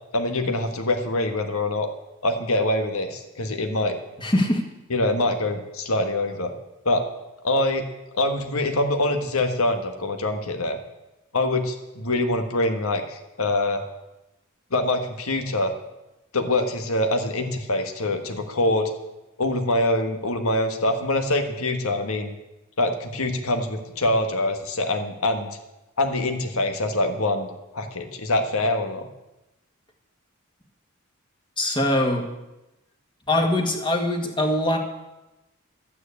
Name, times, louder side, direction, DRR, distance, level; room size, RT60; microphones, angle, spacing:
voice 1, 0.1-1.9 2.2-4.0 4.9-6.5 6.8-7.0 7.4-7.8 8.1-10.8 11.3-13.8 14.7-15.7 16.3-18.9 19.4-22.3 22.8-25.5 26.0-29.1, left 2 dB, 75° left, 6 dB, 1.6 m, -24 dB
voice 2, 4.2-4.6 31.6-32.2 33.3-34.8, left 1 dB, 20° left, 3 dB, 1.7 m, -22 dB
12.5 x 9.5 x 8.3 m, 0.97 s
head